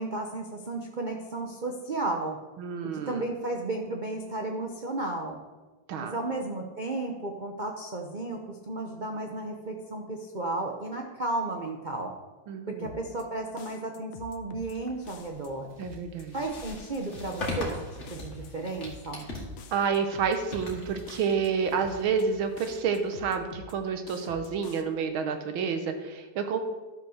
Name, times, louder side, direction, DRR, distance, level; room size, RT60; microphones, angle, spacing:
voice 1, 0.0-2.4 3.1-5.4 6.0-12.1 12.7-15.7 16.3-17.8 18.1-19.3, right 2 dB, 45° right, 2 dB, 0.6 m, -33 dB
voice 2, 2.6-3.3 5.9-6.2 12.5-12.9 15.8-16.4 19.7-26.6, right 6 dB, 85° right, 7 dB, 1.8 m, -29 dB
sound 1, 12.8-13.2 13.6-14.8 15.1-15.5 15.8-16.2 16.6-17.8 18.1-18.5 18.8-19.2 19.6-20.8 21.1-21.5 21.8-22.2 22.6-23.8 24.1-24.8, left 7 dB, 85° left, 1.6 m, -47 dB
sound 2, 14.6-23.3, left 2 dB, 35° left, 2.3 m, -41 dB
12.0 x 5.8 x 6.4 m, 1.2 s
omnidirectional pair, 2.2 m